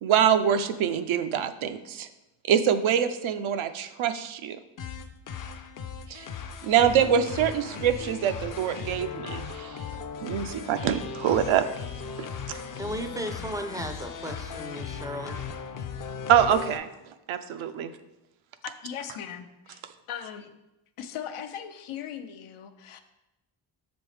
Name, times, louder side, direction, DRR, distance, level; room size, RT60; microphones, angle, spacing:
voice 1, 0.0-2.1 2.4-4.6 6.1-6.3 6.6-9.9 10.2-11.7 12.5-12.6 16.3-16.9 17.3-17.9, right 9 dB, 75° right, 10 dB, 0.6 m, -24 dB
sound 1, 4.8-16.8, left 6 dB, 40° left, 0.5 m, -37 dB
voice 2, 12.8-15.4, right 1 dB, 10° right, 6 dB, 0.4 m, -35 dB
voice 3, 18.6-19.8 20.1-20.5 21.0-23.0, left 9 dB, 85° left, 8 dB, 0.7 m, -38 dB
6.9 x 5.2 x 3.3 m, 0.96 s
cardioid pair, 115°, 49 cm